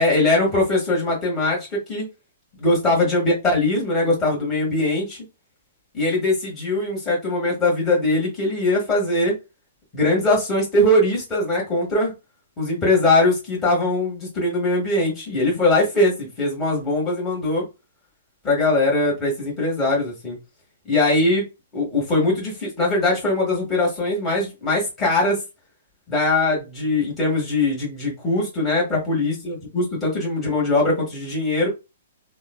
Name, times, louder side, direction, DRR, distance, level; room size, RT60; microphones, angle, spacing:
voice 1, 0.0-2.1 2.6-5.2 5.9-9.4 9.9-12.1 12.6-17.7 18.4-20.4 20.9-21.4 21.7-25.4 26.1-31.7, left 2 dB, 20° left, 1.5 m, -21 dB
3.0 x 2.3 x 2.4 m
hypercardioid pair, 135°, 0 cm